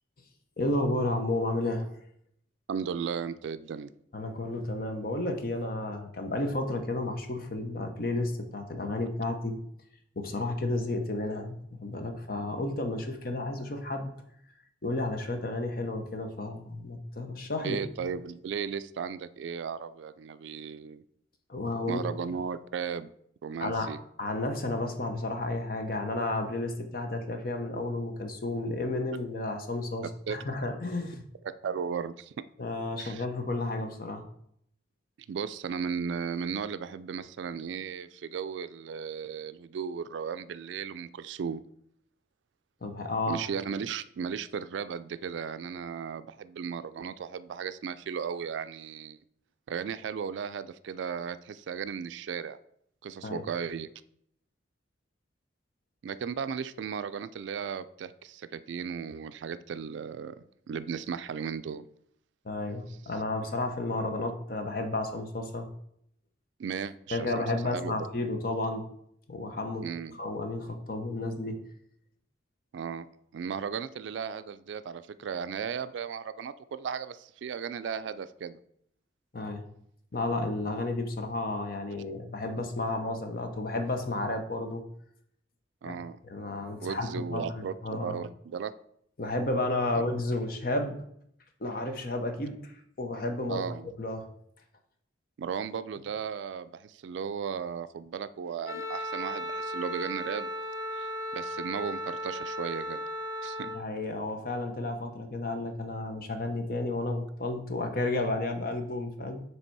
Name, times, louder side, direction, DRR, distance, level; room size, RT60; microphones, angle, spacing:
voice 1, 0.6-1.9 4.1-9.6 10.2-14.1 14.8-18.1 21.5-22.0 23.6-23.9 24.2-31.2 32.6-34.2 42.8-43.4 53.2-53.4 62.4-65.7 67.1-68.9 69.3-69.9 70.1-71.6 79.3-79.6 80.1-84.8 85.8-85.9 86.2-88.2 89.2-91.0 91.6-93.6 94.0-94.3 103.6-109.4, left 2 dB, 50° left, 5 dB, 0.8 m, -32 dB
voice 2, 2.7-3.9 17.6-21.0 21.9-23.1 23.4-24.0 30.3-30.4 31.6-32.4 33.0-33.2 35.3-41.6 43.3-49.2 49.7-52.6 53.0-53.9 56.0-60.4 60.7-61.8 66.6-67.9 69.8-70.2 72.7-73.1 73.3-78.6 85.8-86.2 86.8-88.7 89.9-90.0 93.5-93.9 95.4-100.5 100.9-103.0 103.4-103.7, right 6 dB, 75° right, 13 dB, 0.3 m, -35 dB
Wind instrument woodwind instrument, 98.6-103.8, equal, 90° left, 0.8 m, -36 dB
6.9 x 3.3 x 4.6 m, 0.69 s
head